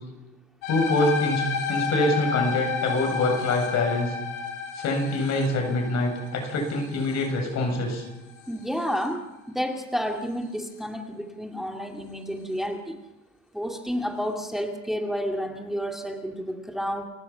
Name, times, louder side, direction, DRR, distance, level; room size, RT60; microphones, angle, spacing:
sound 1, 0.6-9.1, left 6 dB, 85° left, 5.3 m, -32 dB
voice 1, 0.7-4.1 4.7-8.1, left 2 dB, 60° left, 3 dB, 7.8 m, -25 dB
voice 2, 8.5-13.0 13.5-17.0, equal, ahead, 3 dB, 2.4 m, -30 dB
29.5 x 16.0 x 5.8 m, 1.0 s
supercardioid pair, 90°, 30 cm